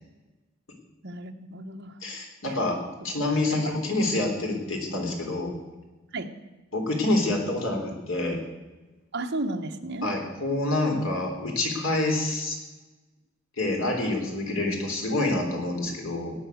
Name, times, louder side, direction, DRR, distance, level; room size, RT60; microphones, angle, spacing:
voice 1, 1.0-2.0 2.5-2.6 3.5-3.8 6.1-6.3 9.1-10.1, right 2 dB, 55° right, 4 dB, 1.2 m, -33 dB
voice 2, 2.0-2.8 3.0-5.5 6.7-8.4 10.0-12.6 13.6-16.3, left 2 dB, 80° left, 2 dB, 3.7 m, -27 dB
18.0 x 9.5 x 6.4 m, 1.2 s
head